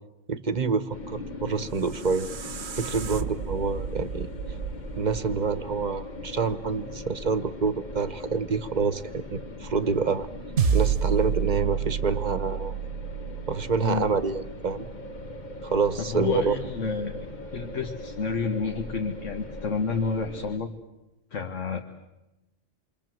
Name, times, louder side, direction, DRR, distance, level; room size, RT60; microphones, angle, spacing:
voice 1, 0.3-2.3 2.8-4.3 5.0-10.3 10.7-12.7 13.5-14.9 15.6-16.6, right 5 dB, 40° right, 12 dB, 1.1 m, -27 dB
sound 1, 0.9-20.6, left 2 dB, 40° left, 1.2 m, -40 dB
sound 2, 1.4-6.5, right 6 dB, 85° right, 1.5 m, -37 dB
sound 3, 10.6-15.1, right 7 dB, 70° right, 1.4 m, -28 dB
voice 2, 13.8-14.1 16.1-17.2 17.5-20.7 21.3-21.8, left 5 dB, 80° left, 4 dB, 1.7 m, -29 dB
28.0 x 24.0 x 7.7 m, 1.0 s
omnidirectional pair, 1.3 m